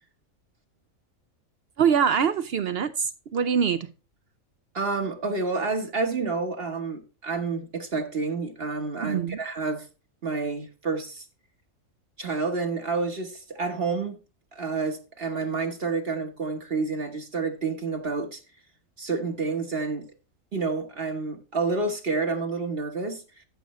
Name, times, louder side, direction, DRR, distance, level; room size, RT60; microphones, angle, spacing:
voice 1, 1.8-3.9 9.0-9.4, right 7 dB, 60° right, 0.7 m, -24 dB
voice 2, 4.7-9.9 10.2-11.2 12.2-14.2 14.5-18.4 19.0-20.0 20.5-23.2, right 4 dB, 45° right, 1.2 m, -29 dB
14.0 x 6.7 x 3.0 m
omnidirectional pair, 1.4 m